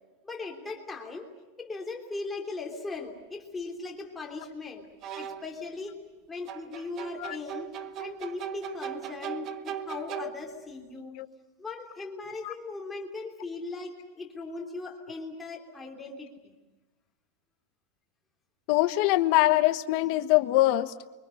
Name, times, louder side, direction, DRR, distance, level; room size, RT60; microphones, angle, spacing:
voice 1, 0.2-1.3 1.6-4.9 5.2-6.0 6.3-7.7 8.0-11.2 11.6-16.6, left 3 dB, 5° left, 1 dB, 3.3 m, -39 dB
sound 1, 2.9-3.0 5.0-5.6 6.5-10.7, right 9 dB, 30° right, 0.9 m, -39 dB
voice 2, 18.7-21.2, left 17 dB, 40° left, 11 dB, 1.2 m, -23 dB
29.5 x 24.0 x 6.5 m, 1.2 s
supercardioid pair, 175°, 0 cm